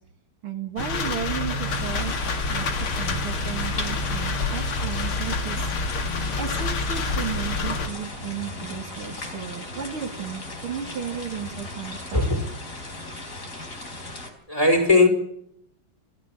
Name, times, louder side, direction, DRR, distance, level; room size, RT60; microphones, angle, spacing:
voice 1, 0.4-5.7 6.4-12.2, right 8 dB, 75° right, 2.9 m, -34 dB
sound 1, 0.8-7.9, left 3 dB, 75° left, 2.9 m, -27 dB
sound 2, 1.6-14.3, left 2 dB, 35° left, 4.2 m, -37 dB
voice 2, 14.5-15.1, left 2 dB, 15° left, 5.2 m, -18 dB
26.0 x 15.0 x 7.9 m
omnidirectional pair, 2.4 m